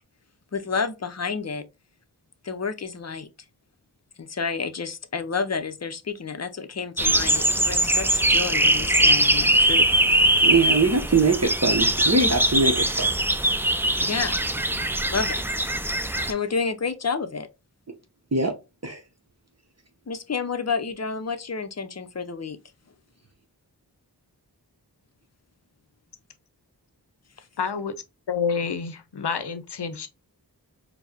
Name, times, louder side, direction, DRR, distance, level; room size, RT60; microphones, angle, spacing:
voice 1, 0.5-1.7 2.4-3.3 4.2-10.2 14.0-14.4 15.1-15.4 16.1-17.5 20.1-22.6, left 5 dB, 40° left, 0.6 m, -30 dB
sound 1, 7.0-16.3, right 1 dB, 5° right, 0.3 m, -21 dB
voice 2, 10.4-13.1 18.3-18.5 18.8-19.0, right 3 dB, 40° right, 0.7 m, -22 dB
voice 3, 27.6-30.1, left 6 dB, 80° left, 0.6 m, -29 dB
4.5 x 2.1 x 2.7 m
wide cardioid pair, 45°, 40 cm